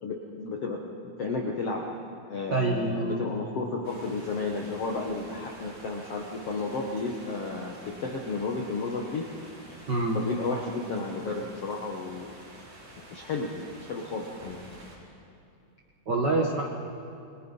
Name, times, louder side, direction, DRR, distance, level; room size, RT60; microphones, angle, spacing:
voice 1, 0.0-1.8 2.3-9.2 10.1-12.3 13.1-14.6, left 3 dB, 65° left, 0 dB, 1.5 m, -33 dB
voice 2, 2.5-3.2 9.9-10.2 16.1-16.7, right 2 dB, 85° right, 0 dB, 0.9 m, -26 dB
sound 1, 3.8-15.0, right 1 dB, 45° right, 5.7 m, -49 dB
29.5 x 23.0 x 5.6 m, 2.6 s
omnidirectional pair, 4.8 m